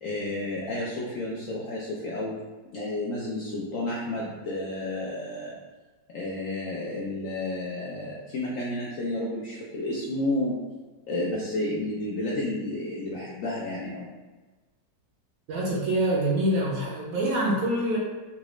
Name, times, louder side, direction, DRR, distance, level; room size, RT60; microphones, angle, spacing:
voice 1, 0.0-2.4 2.7-5.6 6.1-10.6 11.1-14.1, left 1 dB, 70° left, -5 dB, 0.8 m, -31 dB
voice 2, 15.5-18.0, right 1 dB, 65° right, -3 dB, 1.0 m, -25 dB
3.9 x 2.3 x 3.0 m, 1.3 s
omnidirectional pair, 1.9 m